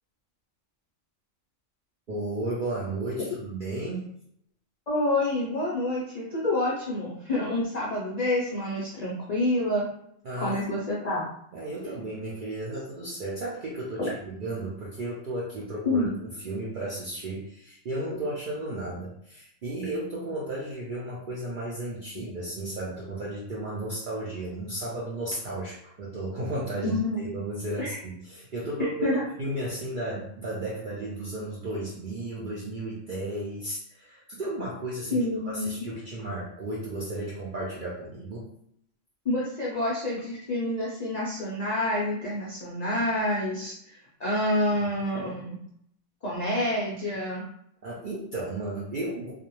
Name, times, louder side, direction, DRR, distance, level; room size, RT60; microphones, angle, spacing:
voice 1, 2.1-4.1 10.2-10.6 11.5-14.1 14.4-16.1 16.4-38.5 47.8-49.3, right 1 dB, 65° right, -5 dB, 0.5 m, -34 dB
voice 2, 4.9-9.9 10.4-11.3 15.8-16.1 26.8-27.2 27.8-28.0 29.0-29.2 35.1-35.8 39.2-45.6 46.2-47.5, left 1 dB, 60° left, -6 dB, 0.4 m, -28 dB
2.5 x 2.0 x 2.9 m, 0.71 s
omnidirectional pair, 1.4 m